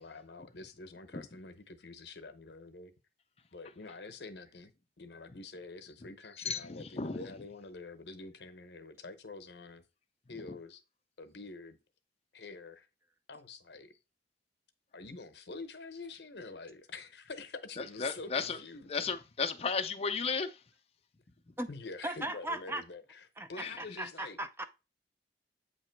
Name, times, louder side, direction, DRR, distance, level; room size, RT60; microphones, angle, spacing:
voice 1, 0.0-2.9 3.5-4.7 5.0-9.8 10.3-10.8 11.2-11.8 12.3-12.9 13.3-13.9 14.9-18.9 21.7-23.2 23.5-24.4, left 3 dB, 65° left, 0.8 m, -46 dB
voice 2, 6.3-7.3 10.5-10.6 17.8-18.6 18.9-20.6 21.5-21.6 23.6-23.8, left 5 dB, 35° left, 0.5 m, -34 dB
voice 3, 22.0-22.8 23.4-24.7, right 1 dB, 15° right, 0.5 m, -38 dB
8.3 x 2.9 x 4.5 m
head